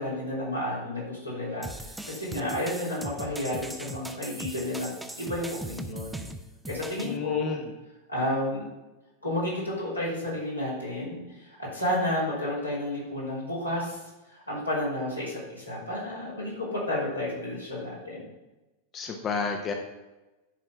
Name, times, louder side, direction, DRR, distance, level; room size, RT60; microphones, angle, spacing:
voice 1, 0.0-6.2 6.7-7.5 8.1-8.7 9.2-14.0 14.3-18.2, left 1 dB, 85° left, -7 dB, 3.4 m, -31 dB
sound 1, 1.6-7.2, right 1 dB, 5° right, 0.6 m, -39 dB
voice 2, 7.0-7.7 18.9-19.7, left 4 dB, 30° left, 3 dB, 0.9 m, -31 dB
10.0 x 4.4 x 5.7 m, 1.1 s
figure-of-eight pair, 90°, 0 cm